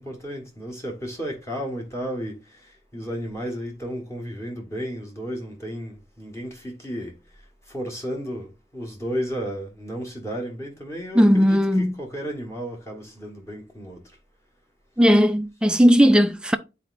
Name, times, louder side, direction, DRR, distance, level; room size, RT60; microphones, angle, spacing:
voice 1, 0.0-7.2 7.7-14.0, equal, 15° left, 1.3 m, -33 dB
voice 2, 11.2-11.9 15.0-16.6, equal, 5° right, 0.3 m, -17 dB
10.0 x 4.1 x 2.5 m
head